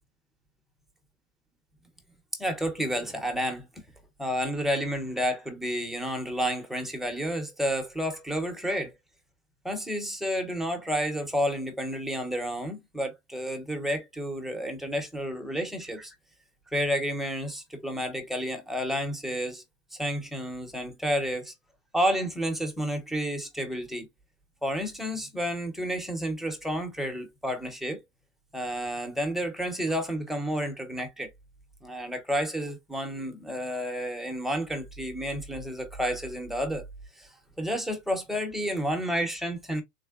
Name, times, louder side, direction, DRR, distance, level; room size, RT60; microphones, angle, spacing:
voice 1, 2.3-3.7 4.2-8.9 9.6-16.1 16.7-19.6 19.9-21.5 21.9-24.1 24.6-28.0 28.5-31.3 31.8-36.8 37.2-37.3 37.6-39.8, equal, ahead, 0.5 m, -30 dB
3.5 x 3.1 x 2.3 m
supercardioid pair, 135°, 36 cm